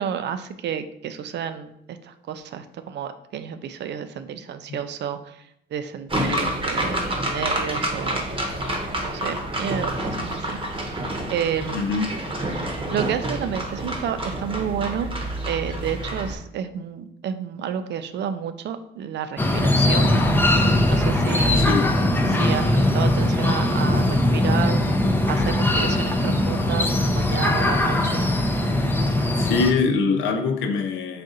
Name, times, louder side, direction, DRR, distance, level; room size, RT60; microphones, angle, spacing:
voice 1, 0.0-8.3 9.0-11.9 12.9-15.1 15.5-20.1 20.9-21.7 22.3-24.8 25.3-28.3, right 8 dB, 60° right, 0.4 m, -31 dB
sound 1, 6.1-16.4, right 1 dB, 25° right, 0.9 m, -28 dB
voice 2, 6.2-6.5 11.7-12.2 21.5-21.9 29.4-31.2, left 4 dB, 75° left, 0.6 m, -23 dB
sound 2, 19.4-29.7, left 1 dB, 10° left, 0.5 m, -20 dB
4.1 x 2.5 x 3.8 m
cardioid pair, 90°, 20 cm